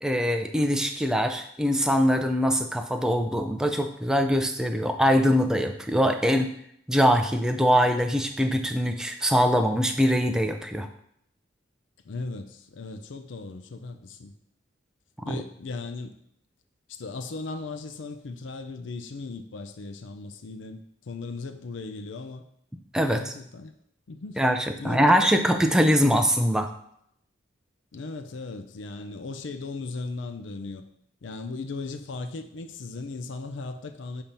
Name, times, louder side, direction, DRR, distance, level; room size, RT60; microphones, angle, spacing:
voice 1, 0.0-6.5 6.9-10.9 15.3-15.4 22.9-23.3 24.4-26.7, equal, 5° right, 5 dB, 0.4 m, -23 dB
voice 2, 12.1-14.3 15.2-16.2 16.9-22.4 23.1-23.7 24.1-24.4 24.8-25.8 26.2-26.3 27.9-30.8 31.2-34.2, left 3 dB, 75° left, 8 dB, 0.5 m, -37 dB
7.1 x 2.9 x 5.2 m, 0.71 s
head